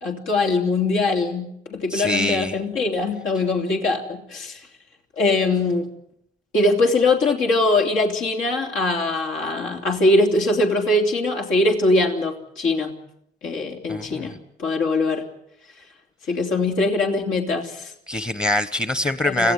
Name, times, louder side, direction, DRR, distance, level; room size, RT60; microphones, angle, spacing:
voice 1, 0.0-4.6 5.2-5.9 6.5-13.0 13.4-14.3 14.6-15.3 16.3-17.9 19.2-19.5, left 2 dB, 80° left, 1 dB, 3.3 m, -22 dB
voice 2, 1.9-2.5 13.9-14.4 18.1-19.5, left 1 dB, 20° left, 13 dB, 1.0 m, -24 dB
25.0 x 15.5 x 9.5 m, 0.76 s
cardioid pair, 90°, 20 cm